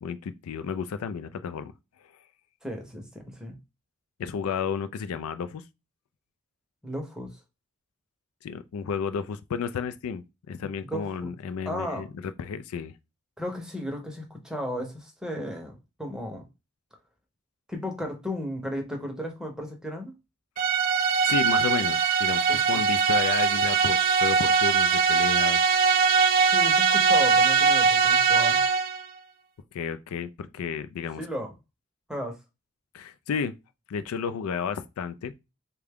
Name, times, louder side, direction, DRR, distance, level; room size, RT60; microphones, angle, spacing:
voice 1, 0.0-1.7 4.2-5.6 8.4-12.9 20.6-20.7 21.2-25.6 29.7-31.2 32.9-33.5 33.9-35.3, left 6 dB, 85° left, 0.3 m, -32 dB
voice 2, 2.6-3.6 6.8-7.4 10.9-11.3 11.7-12.1 13.4-16.5 17.7-20.1 22.5-22.8 26.4-28.6 31.2-31.5 32.1-32.4, equal, 5° right, 0.7 m, -35 dB
sound 1, 20.6-29.0, right 5 dB, 40° right, 0.3 m, -21 dB
3.6 x 2.2 x 3.4 m
head